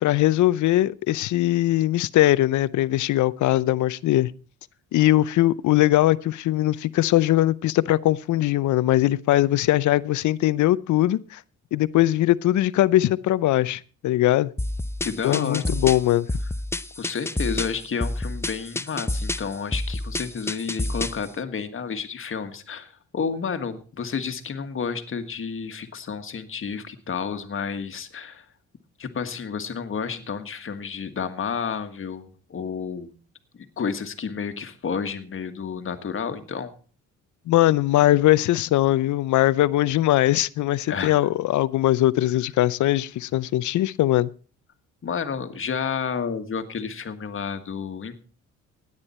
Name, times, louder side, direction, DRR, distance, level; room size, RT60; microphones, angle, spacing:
voice 1, 0.0-4.3 4.9-11.4 11.7-14.5 15.2-16.3 37.5-44.3, left 15 dB, 75° left, 0.6 m, -21 dB
sound 1, 14.6-21.3, left 1 dB, 10° left, 0.5 m, -29 dB
voice 2, 15.0-15.8 17.0-28.5 29.0-33.1 33.8-36.7 40.9-41.2 45.0-48.2, left 6 dB, 45° left, 1.7 m, -31 dB
16.5 x 9.8 x 4.3 m
cardioid pair, 90°, 30 cm